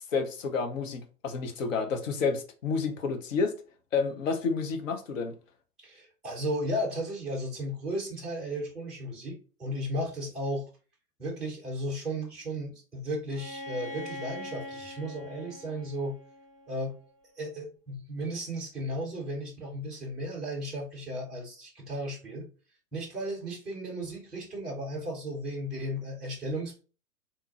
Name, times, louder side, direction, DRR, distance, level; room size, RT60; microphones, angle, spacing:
voice 1, 0.1-3.6 3.9-5.4, left 5 dB, 55° left, 0.9 m, -30 dB
voice 2, 5.8-10.7 11.2-16.2 16.7-17.0 17.4-22.5 22.9-26.8, equal, ahead, 0.4 m, -35 dB
Bowed string instrument, 13.3-17.1, left 1 dB, 90° left, 1.6 m, -42 dB
3.6 x 2.9 x 2.8 m
figure-of-eight pair, 115°, 47 cm